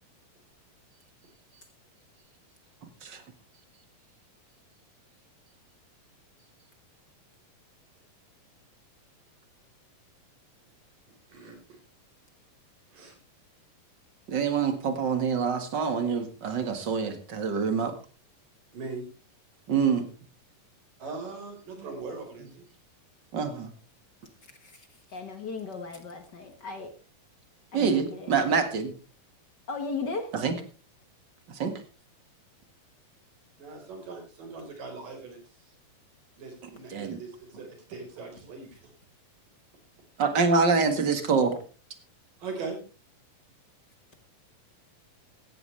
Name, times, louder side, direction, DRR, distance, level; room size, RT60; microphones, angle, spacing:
voice 1, 14.3-17.9 19.7-20.1 23.3-23.7 27.7-28.9 30.3-30.5 31.5-31.7 36.9-37.2 40.2-41.6, right 5 dB, 40° right, 8 dB, 1.9 m, -26 dB
voice 2, 18.7-19.1 21.0-22.6 33.6-35.4 36.4-38.9 42.4-42.8, right 4 dB, 70° right, 3 dB, 6.1 m, -40 dB
voice 3, 25.1-26.9 27.7-28.5 29.7-30.3, left 4 dB, 55° left, 7 dB, 1.2 m, -36 dB
16.0 x 13.5 x 3.3 m, 0.34 s
omnidirectional pair, 4.0 m